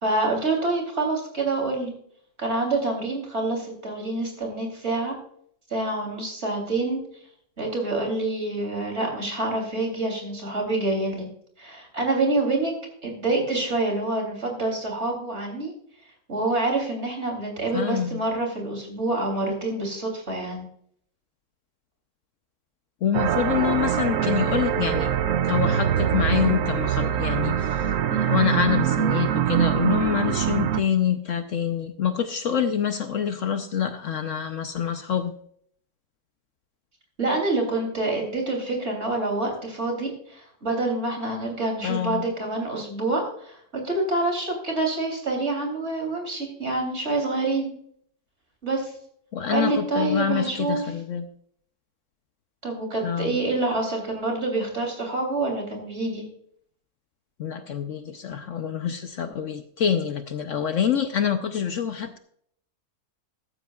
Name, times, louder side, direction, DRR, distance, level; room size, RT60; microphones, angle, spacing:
voice 1, 0.0-2.0 2.4-5.2 5.7-7.0 7.6-11.3 11.6-12.7 13.0-15.7 16.3-20.7 37.2-47.7 48.6-48.9 49.5-50.8 52.6-56.3, right 2 dB, 45° right, 2 dB, 3.5 m, -27 dB
voice 2, 17.7-18.2 23.0-25.1 25.4-35.3 41.8-42.3 49.3-51.3 53.0-53.4 57.4-62.2, left 8 dB, 60° left, 8 dB, 1.0 m, -26 dB
sound 1, 23.1-30.8, right 9 dB, 65° right, 0.9 m, -23 dB
15.0 x 12.0 x 2.4 m, 0.64 s
omnidirectional pair, 1.6 m